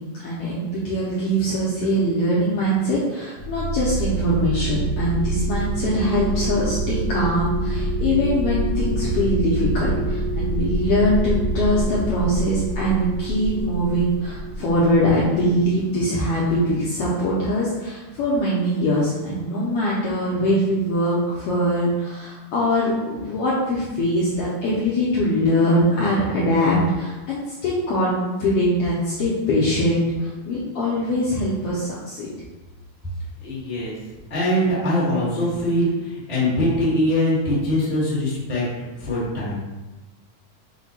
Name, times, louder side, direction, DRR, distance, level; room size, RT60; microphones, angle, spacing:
voice 1, 0.0-32.3, equal, 75° left, -6 dB, 1.4 m, -22 dB
sound 1, 3.4-15.6, right 2 dB, 80° right, 1.1 m, -26 dB
voice 2, 33.4-33.9 34.3-38.6 39.0-39.6, left 1 dB, 30° left, -8 dB, 0.7 m, -22 dB
5.9 x 2.2 x 4.1 m, 1.1 s
omnidirectional pair, 3.4 m